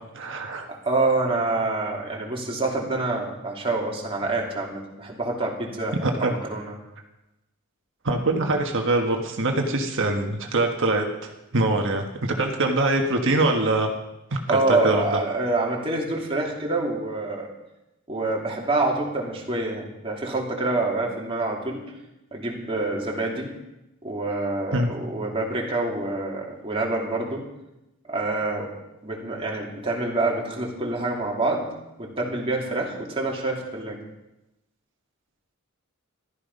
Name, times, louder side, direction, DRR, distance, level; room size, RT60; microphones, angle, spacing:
voice 1, 0.1-0.6 6.0-6.3 8.0-13.9 14.3-14.4 14.7-15.2 24.7-24.9, right 2 dB, 60° right, 2 dB, 1.5 m, -23 dB
voice 2, 0.8-6.7 14.5-17.5 18.1-21.8 22.3-23.5 24.0-27.5 28.1-28.7 29.0-31.7 32.0-34.0, right 2 dB, 25° right, -1 dB, 2.9 m, -26 dB
14.5 x 13.0 x 5.4 m, 0.94 s
head